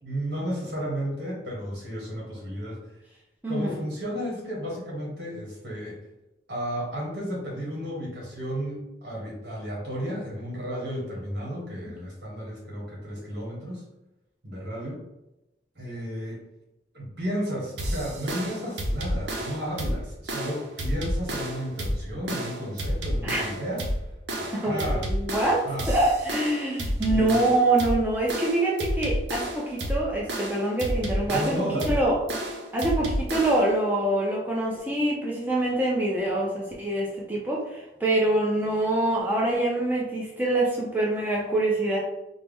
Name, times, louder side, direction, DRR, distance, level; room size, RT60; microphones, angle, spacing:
voice 1, 0.0-2.8 3.5-6.0 6.5-13.8 14.4-15.0 15.7-16.4 16.9-23.9 24.3-25.0 25.6-25.9 27.1-27.4 31.3-32.0, equal, 75° right, -3 dB, 1.5 m, -33 dB
voice 2, 3.4-3.8 23.2-23.5 24.6-31.5 31.9-32.2 32.7-42.0, right 1 dB, 10° right, -4 dB, 0.5 m, -25 dB
sound 1, 17.8-33.7, equal, 90° right, 0.7 m, -30 dB
4.5 x 2.0 x 3.5 m, 0.94 s
head